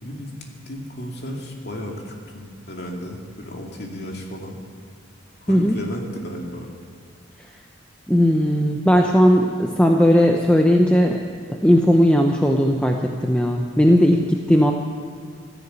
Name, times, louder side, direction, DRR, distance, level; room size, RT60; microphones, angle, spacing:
voice 1, 0.0-4.6 5.4-6.7, equal, 55° left, 0 dB, 2.4 m, -34 dB
voice 2, 8.1-11.2 11.6-14.7, equal, 5° left, 2 dB, 0.7 m, -17 dB
13.5 x 11.0 x 8.3 m, 2.2 s
head